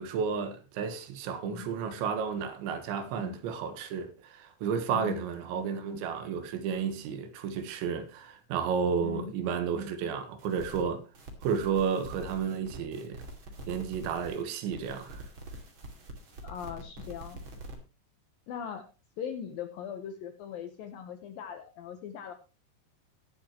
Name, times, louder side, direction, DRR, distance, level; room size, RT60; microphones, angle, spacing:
voice 1, 0.0-11.0 11.4-13.2 13.7-15.2, right 6 dB, 80° right, 3.6 m, -32 dB
voice 2, 4.9-5.2 9.0-9.3 16.4-17.4 18.5-18.9 19.2-22.3, left 8 dB, 70° left, 2.2 m, -40 dB
sound 1, 10.4-10.8 11.1-14.4 14.7-17.7, right 1 dB, 35° right, 2.3 m, -45 dB
21.0 x 7.5 x 3.0 m
omnidirectional pair, 5.2 m